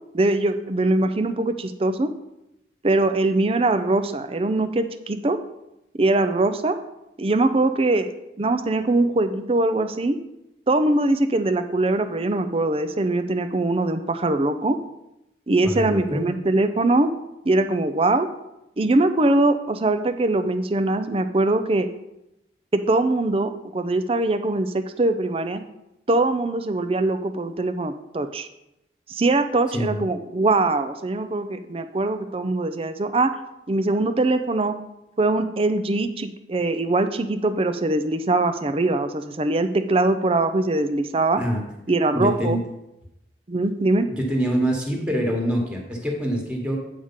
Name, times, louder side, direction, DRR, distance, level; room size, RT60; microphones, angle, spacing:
voice 1, 0.1-2.1 2.8-5.4 6.0-6.8 7.2-8.1 8.4-10.2 10.7-14.8 15.5-17.1 17.5-18.3 18.8-21.9 22.7-25.6 26.1-28.5 29.1-33.3 33.7-34.7 35.2-41.4 41.9-42.6 43.5-44.1, right 2 dB, 30° right, 10 dB, 0.5 m, -22 dB
voice 2, 15.6-16.3 29.7-30.0 41.4-41.6 42.1-42.6 44.2-46.8, equal, 5° right, 0 dB, 1.4 m, -25 dB
8.8 x 4.9 x 5.7 m, 0.86 s
head